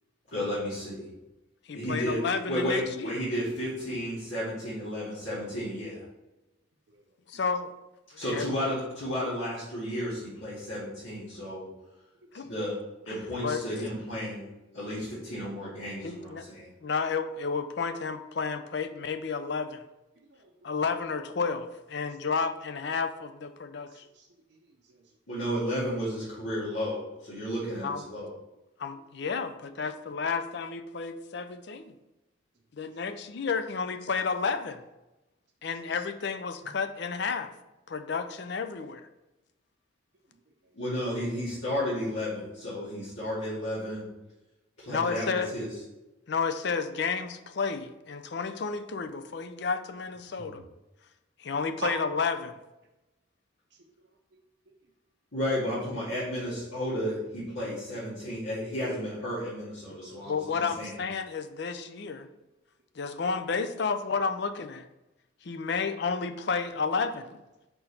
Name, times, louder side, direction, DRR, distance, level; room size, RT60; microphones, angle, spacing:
voice 1, 0.3-1.1 1.7-2.2 2.5-6.0 8.2-11.7 12.4-12.8 13.0-16.7 25.3-28.3 40.7-44.0 44.8-45.7 55.3-61.0, equal, 80° left, -11 dB, 2.3 m, -33 dB
voice 2, 1.7-3.2 7.3-7.7 8.3-8.5 12.3-12.5 13.1-13.6 16.0-16.4 16.8-19.8 20.6-24.0 27.8-28.0 28.8-31.9 32.8-34.8 35.6-37.5 37.9-39.1 44.9-45.5 46.3-50.6 51.4-52.5 60.2-62.3 63.0-64.9 65.4-67.4, left 5 dB, 55° left, 10 dB, 0.4 m, -31 dB
voice 3, 6.9-7.4 12.2-12.6 20.1-20.9 22.0-22.2 23.9-25.4 28.8-29.1 32.8-33.0 35.6-35.9 36.6-36.7 40.3-40.8 50.4-50.7 51.8-51.9 53.7-54.2 54.7-54.8 60.1-60.3, right 4 dB, 55° right, 0 dB, 0.6 m, -47 dB
5.2 x 4.5 x 4.2 m, 0.99 s
head